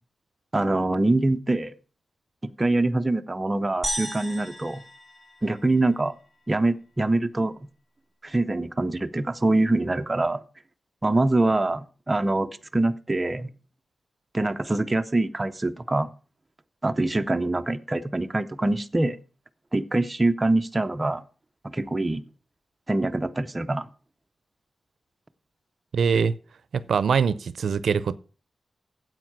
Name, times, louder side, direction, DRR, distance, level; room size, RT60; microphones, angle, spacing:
voice 1, 0.5-1.7 2.4-4.8 5.4-6.1 6.5-7.5 8.2-10.4 11.0-13.5 14.3-16.1 16.8-19.2 19.7-21.2 21.6-22.2 22.9-23.9, right 2 dB, 20° right, 0.5 m, -24 dB
sound 1, 3.8-6.3, right 1 dB, ahead, 4.0 m, -35 dB
voice 2, 25.9-26.3 26.7-28.2, right 6 dB, 80° right, 0.5 m, -23 dB
9.3 x 8.0 x 6.0 m
wide cardioid pair, 165°, 0 cm